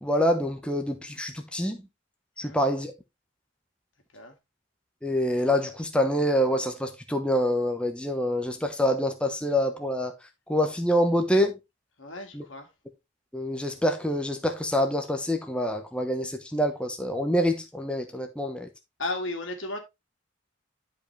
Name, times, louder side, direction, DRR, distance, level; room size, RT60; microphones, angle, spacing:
voice 1, 0.0-1.8 2.4-2.9 5.0-10.1 10.5-11.6 12.3-12.4 13.3-18.7, equal, 5° left, 1.0 m, -26 dB
voice 2, 12.0-12.7 19.0-19.8, left 2 dB, 85° left, 2.3 m, -34 dB
11.5 x 5.2 x 3.3 m
head